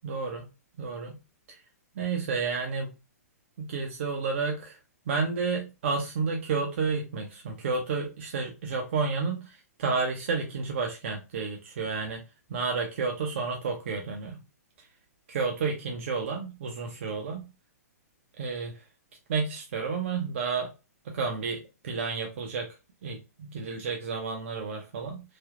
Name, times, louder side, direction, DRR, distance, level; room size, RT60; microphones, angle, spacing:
voice 1, 0.0-0.4 0.8-1.2 1.5-1.6 2.0-2.9 3.6-4.8 5.1-12.2 12.5-14.4 15.3-17.4 18.4-18.7 19.3-20.7 21.1-21.6 21.8-22.7 23.0-25.2, right 4 dB, 50° right, 1 dB, 0.7 m, -31 dB
3.3 x 2.7 x 2.3 m, 0.28 s
figure-of-eight pair, 115°, 9 cm